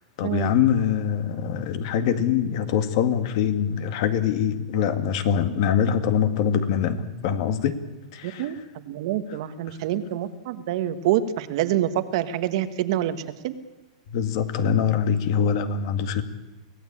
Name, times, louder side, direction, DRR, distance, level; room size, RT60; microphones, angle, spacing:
voice 1, 0.2-7.8 8.1-8.4 14.1-16.2, left 8 dB, 45° left, 10 dB, 1.9 m, -23 dB
voice 2, 8.2-13.5, right 12 dB, 50° right, 10 dB, 1.4 m, -26 dB
24.5 x 16.5 x 8.7 m, 1.1 s
supercardioid pair, 160°, 4 cm